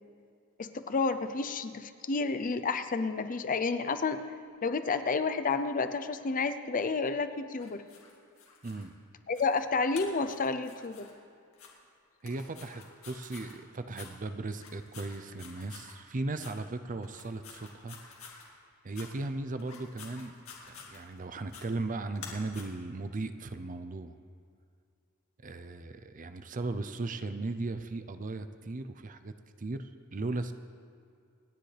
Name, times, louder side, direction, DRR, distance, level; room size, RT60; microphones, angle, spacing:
voice 1, 0.6-4.2 4.6-7.8 9.3-11.1, left 4 dB, 40° left, 10 dB, 0.6 m, -30 dB
sound 1, 7.6-8.9 9.3-9.6 9.9-11.1 11.5-11.7 12.2-13.5 13.9-14.1 14.5-15.9 16.4-16.5 17.0-18.4 18.9-19.1 19.6-21.2 21.5-21.6 22.1-22.6, left 6 dB, 65° left, 2.4 m, -49 dB
voice 2, 12.2-18.0 18.8-20.3 20.7-24.1 25.4-30.5, right 2 dB, 35° right, 10 dB, 0.6 m, -37 dB
27.0 x 10.0 x 3.4 m, 2.3 s
head